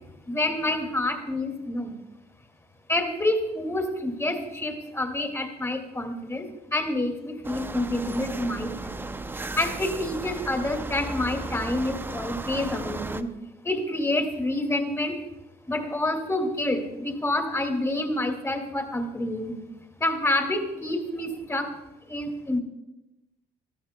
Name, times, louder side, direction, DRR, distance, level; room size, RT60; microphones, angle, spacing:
voice 1, 0.3-1.9 2.9-6.5 6.7-9.0 9.6-13.3 13.6-15.1 15.7-19.6 20.0-21.7 22.1-22.6, left 1 dB, 15° left, 5 dB, 2.2 m, -28 dB
sound 1, 7.4-13.2, right 2 dB, 10° right, 0.5 m, -35 dB
19.0 x 13.5 x 2.2 m, 0.97 s
cardioid pair, 110°, 17 cm